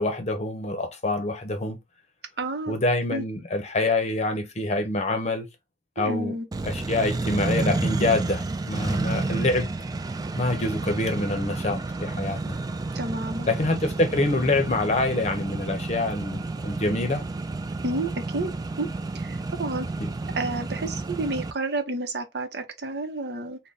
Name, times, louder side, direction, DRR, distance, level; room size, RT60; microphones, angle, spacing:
voice 1, 0.0-1.8 2.7-5.5 6.0-6.3 6.6-9.7 10.3-12.6 13.5-17.2 20.0-20.1, left 2 dB, 40° left, 0.7 m, -26 dB
voice 2, 2.4-2.8 3.1-3.2 6.0-6.5 12.9-13.5 17.8-18.5 18.8-18.9 19.1-19.9 20.3-23.6, right 2 dB, 65° right, 0.7 m, -30 dB
Accelerating revving vroom, 6.5-21.5, right 3 dB, 20° right, 0.3 m, -30 dB
3.9 x 2.1 x 3.3 m
head